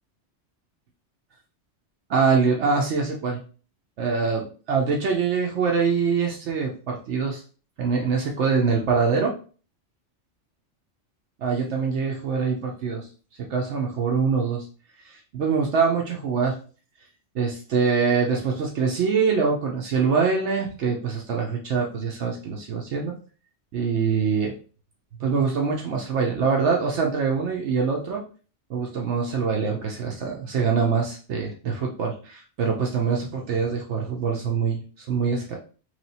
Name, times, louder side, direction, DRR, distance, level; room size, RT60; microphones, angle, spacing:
voice 1, 2.1-3.4 4.0-7.4 7.8-9.3 11.4-13.1 13.4-14.7 15.0-16.6 17.3-23.2 23.7-24.5 25.2-28.2 28.7-35.6, right 5 dB, 75° right, 0 dB, 1.0 m, -24 dB
3.3 x 2.9 x 4.1 m, 0.38 s
omnidirectional pair, 1.2 m